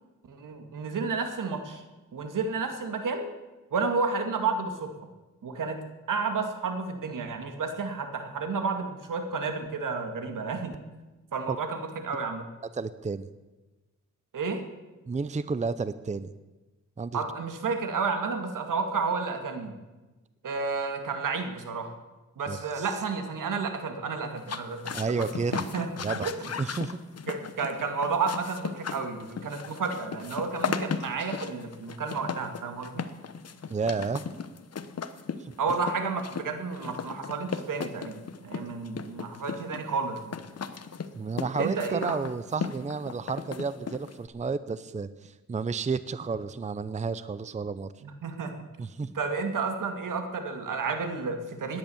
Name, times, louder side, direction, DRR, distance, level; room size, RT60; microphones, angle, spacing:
voice 1, 0.3-1.8 2.1-3.3 3.7-4.9 5.4-10.7 11.3-12.5 14.3-14.6 17.1-19.7 20.4-21.9 22.4-25.9 26.2-26.5 27.3-33.1 35.6-40.4 41.6-42.2 48.0-48.5 49.1-51.8, right 4 dB, 80° right, 6 dB, 2.1 m, -31 dB
voice 2, 12.7-13.3 15.1-16.3 17.0-17.2 22.5-22.9 24.9-25.6 26.0-26.3 26.6-27.0 33.7-34.2 35.4-35.5 41.1-47.9 48.8-49.1, right 4 dB, 25° right, 14 dB, 0.6 m, -31 dB
sound 1, 24.4-44.3, left 6 dB, 50° left, 1.0 m, -36 dB
18.0 x 11.0 x 7.1 m, 1.2 s
wide cardioid pair, 105°, 31 cm